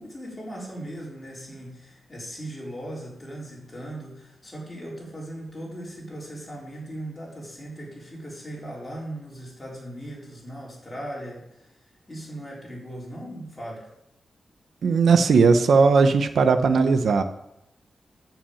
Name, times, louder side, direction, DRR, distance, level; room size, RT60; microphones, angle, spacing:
voice 1, 0.0-11.7 12.1-13.9, right 1 dB, 20° left, -4 dB, 4.1 m, -38 dB
voice 2, 14.8-17.2, right 4 dB, 70° right, 9 dB, 0.8 m, -18 dB
14.5 x 6.0 x 7.1 m, 0.84 s
wide cardioid pair, 170°, 0 cm